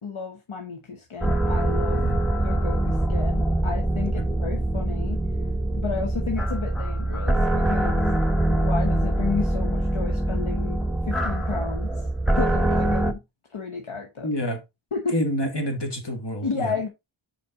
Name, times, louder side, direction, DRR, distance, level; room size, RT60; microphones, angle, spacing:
voice 1, 0.0-2.1 2.4-5.2 5.8-8.2 8.5-11.9 12.3-13.2 13.5-14.3 14.9-15.2 16.4-16.9, left 5 dB, 75° left, 1.1 m, -32 dB
sound 1, 1.2-13.1, right 1 dB, ahead, 0.9 m, -24 dB
voice 2, 1.9-2.2 4.0-4.2 14.2-14.6 15.1-16.7, equal, 55° left, 1.9 m, -28 dB
5.3 x 5.3 x 3.8 m
wide cardioid pair, 45°, 49 cm